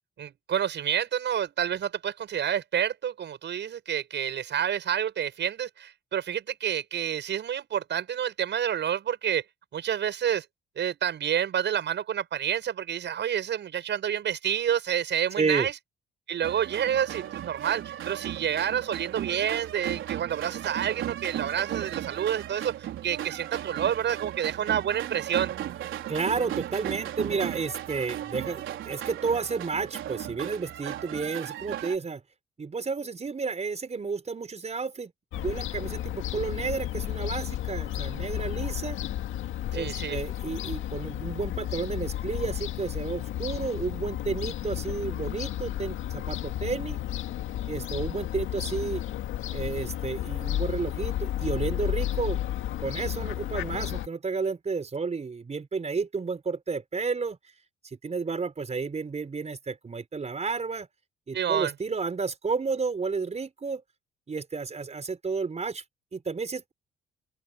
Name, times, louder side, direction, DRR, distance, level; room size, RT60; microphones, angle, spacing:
voice 1, 0.2-9.4 9.7-10.4 10.8-15.7 16.3-25.5 39.7-40.2 61.3-61.7, right 9 dB, 65° right, 7.8 m, -29 dB
voice 2, 15.4-15.7 26.1-32.2 32.6-39.0 39.7-47.0 47.7-49.0 49.5-52.4 52.8-57.4 57.9-60.9 61.3-63.8 64.3-65.8 66.1-66.7, right 4 dB, 35° right, 5.6 m, -31 dB
sound 1, 16.4-32.0, right 12 dB, 80° right, 4.5 m, -36 dB
Fowl / Gull seagull, 35.3-54.1, left 13 dB, 90° left, 2.0 m, -32 dB
open air
cardioid pair, 90°, 20 cm